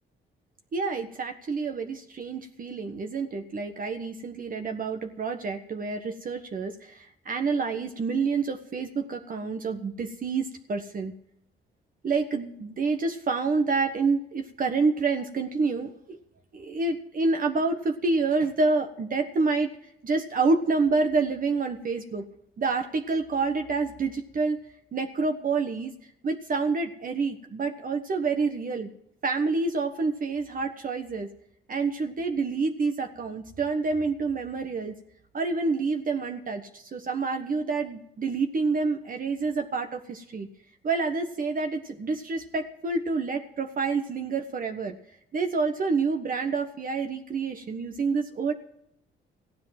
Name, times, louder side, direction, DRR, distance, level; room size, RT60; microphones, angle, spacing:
voice 1, 0.7-11.1 12.0-16.2 16.5-19.7 20.0-22.3 22.6-24.6 24.9-25.9 26.2-28.9 29.2-31.3 31.7-34.9 35.3-40.5 40.8-45.0 45.3-48.5, right 4 dB, 45° right, 4 dB, 1.3 m, -28 dB
15.5 x 10.0 x 5.8 m, 0.72 s
cardioid pair, 90°, 20 cm